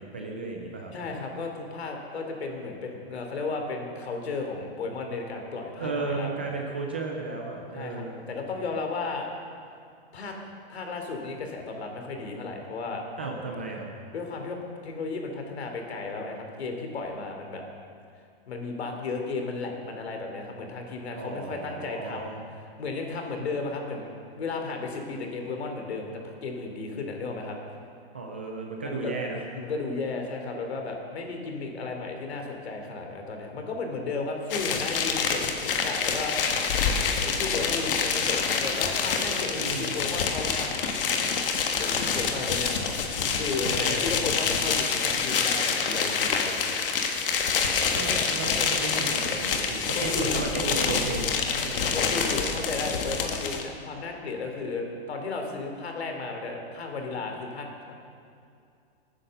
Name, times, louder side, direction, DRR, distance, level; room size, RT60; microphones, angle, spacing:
voice 1, 0.0-0.9 5.8-8.2 13.2-13.9 21.2-22.3 28.1-29.4 39.5-40.0 43.7-44.0 47.9-51.3 51.6-52.0, right 3 dB, 10° right, 0 dB, 0.3 m, -34 dB
voice 2, 0.9-6.3 7.7-9.3 10.1-10.3 10.7-13.0 14.1-14.6 14.8-17.6 18.5-22.4 22.8-27.6 28.8-29.1 29.5-36.4 37.2-40.9 41.8-42.8 43.3-46.8 48.5-48.6 49.9-50.3 51.8-57.7, left 3 dB, 90° left, 3 dB, 3.2 m, -34 dB
sound 1, 34.5-53.6, left 5 dB, 60° left, 1.7 m, -27 dB
19.5 x 9.8 x 6.6 m, 2.4 s
hypercardioid pair, 175°, 31 cm